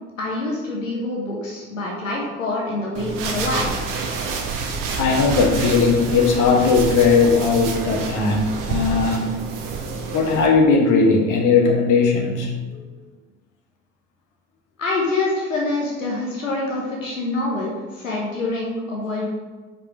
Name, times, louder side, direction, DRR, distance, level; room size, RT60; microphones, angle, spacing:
voice 1, 0.2-3.7 14.8-19.3, left 2 dB, 90° left, -3 dB, 1.2 m, -26 dB
sound 1, 2.9-10.5, right 4 dB, 55° right, 1.3 m, -28 dB
voice 2, 5.0-9.3 10.1-12.9, left 4 dB, 50° left, 2 dB, 1.5 m, -18 dB
5.3 x 5.2 x 5.0 m, 1.3 s
figure-of-eight pair, 50°, 38 cm